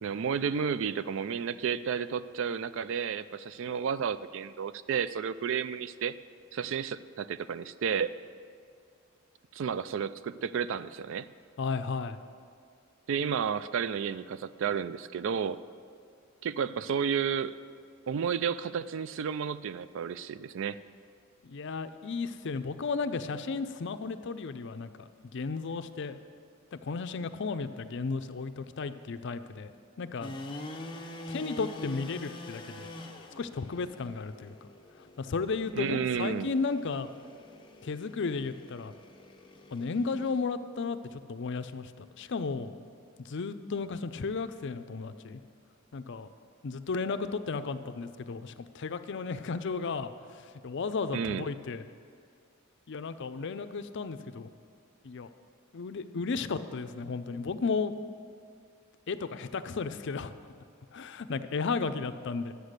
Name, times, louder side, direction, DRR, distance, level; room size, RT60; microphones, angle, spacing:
voice 1, 0.0-6.1 6.5-8.1 9.5-11.3 13.1-15.6 16.4-17.5 18.1-20.8 35.7-36.5 51.1-51.5, right 7 dB, 65° right, 15 dB, 0.3 m, -32 dB
voice 2, 11.6-12.2 21.4-26.2 26.7-29.7 30.0-30.3 31.3-32.9 33.4-34.7 35.2-37.1 37.8-38.9 39.7-42.7 43.2-45.4 45.9-46.3 46.6-51.8 52.9-54.5 55.0-55.3 55.7-58.0 59.1-60.3 60.9-62.5, left 4 dB, 60° left, 11 dB, 0.5 m, -34 dB
sound 1, 30.2-40.4, left 1 dB, 25° left, 0.8 m, -45 dB
11.5 x 8.1 x 6.6 m, 2.2 s
head